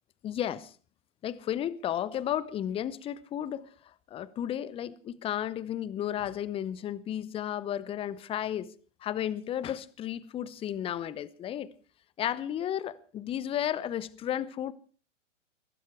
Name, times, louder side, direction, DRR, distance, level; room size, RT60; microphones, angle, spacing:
voice 1, 0.2-0.7 1.2-3.7 4.1-8.7 9.0-11.7 12.2-14.7, left 10 dB, 15° left, 0.7 m, -33 dB
22.5 x 12.0 x 4.9 m
figure-of-eight pair, 110°, 38 cm